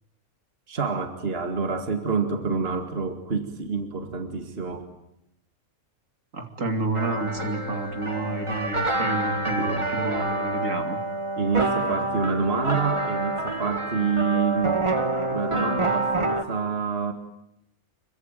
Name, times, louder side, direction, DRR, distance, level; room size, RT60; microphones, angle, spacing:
voice 1, 0.7-4.9 9.3-9.8 11.4-14.8 15.3-17.1, right 5 dB, 40° right, 6 dB, 2.4 m, -27 dB
voice 2, 6.3-11.0, right 2 dB, 60° right, 5 dB, 2.9 m, -29 dB
sound 1, 6.9-16.4, right 2 dB, 20° right, 1.9 m, -27 dB
26.5 x 23.5 x 9.2 m, 0.81 s
omnidirectional pair, 1.5 m